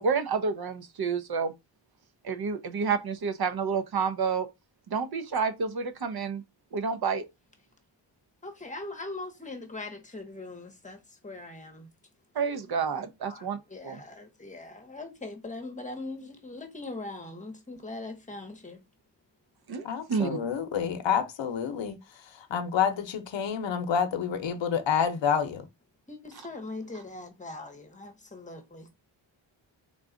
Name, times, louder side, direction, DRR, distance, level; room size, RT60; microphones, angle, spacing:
voice 1, 0.0-1.5 2.2-4.5 4.9-6.4 6.7-7.2 12.3-13.6 13.8-14.0 19.7-20.4 26.3-26.5, right 5 dB, 50° right, 0.7 m, -29 dB
voice 2, 8.4-11.0 11.2-11.9 13.2-13.4 13.7-18.8 26.1-28.9, left 2 dB, 15° left, 0.9 m, -41 dB
voice 3, 19.8-22.0 22.5-25.6, left 7 dB, 65° left, 0.8 m, -28 dB
3.7 x 2.3 x 3.7 m
wide cardioid pair, 105°, 48 cm